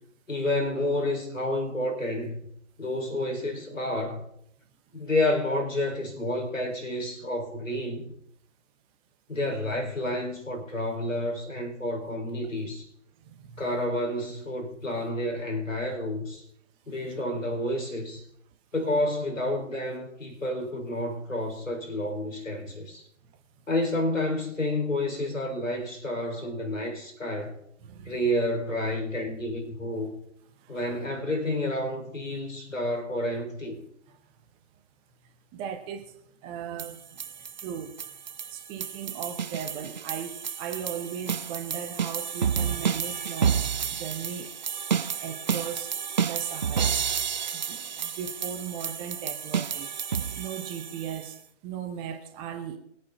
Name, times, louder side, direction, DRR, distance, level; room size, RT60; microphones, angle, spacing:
voice 1, 0.3-2.4 2.8-4.2 4.9-8.0 9.3-12.9 13.6-16.4 16.9-18.2 18.7-23.1 23.7-27.6 28.1-30.2 30.7-33.8, left 1 dB, 90° left, 5.5 m, -30 dB
voice 2, 13.2-13.6 27.8-28.2 30.6-30.8 34.1-34.2 35.5-36.1 36.4-37.0 37.6-38.0 38.5-43.6 43.9-44.6 45.2-45.9 46.2-47.0 47.5-49.9 50.4-52.8, right 8 dB, 15° right, 0.8 m, -37 dB
sound 1, 36.8-51.3, right 7 dB, 40° right, 0.4 m, -30 dB
23.0 x 8.6 x 4.2 m
figure-of-eight pair, 135°, 38 cm